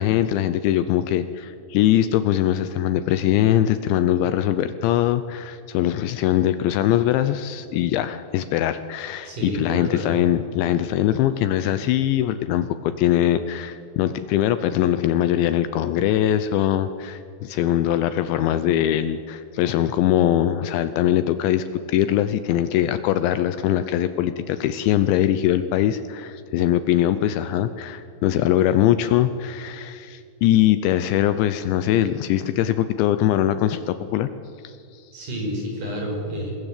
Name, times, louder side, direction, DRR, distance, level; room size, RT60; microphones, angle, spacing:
voice 1, 0.0-34.3 34.6-35.0, left 12 dB, 80° left, 11 dB, 2.9 m, -22 dB
voice 2, 9.2-10.3 35.1-36.5, equal, 40° right, 0 dB, 7.3 m, -29 dB
28.0 x 19.5 x 8.3 m, 2.4 s
omnidirectional pair, 5.6 m